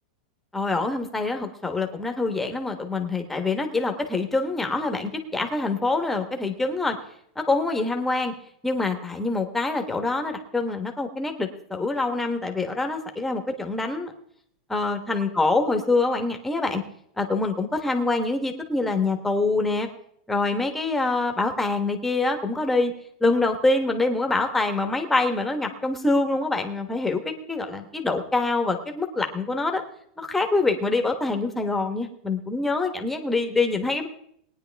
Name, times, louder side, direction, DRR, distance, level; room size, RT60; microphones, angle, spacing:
voice 1, 0.5-7.0 7.4-8.3 8.6-14.1 14.7-16.8 17.2-19.9 20.3-22.9 23.2-29.8 30.2-34.1, left 3 dB, 5° left, 4 dB, 1.1 m, -25 dB
20.0 x 9.6 x 3.4 m, 0.69 s
supercardioid pair, 160°, 5 cm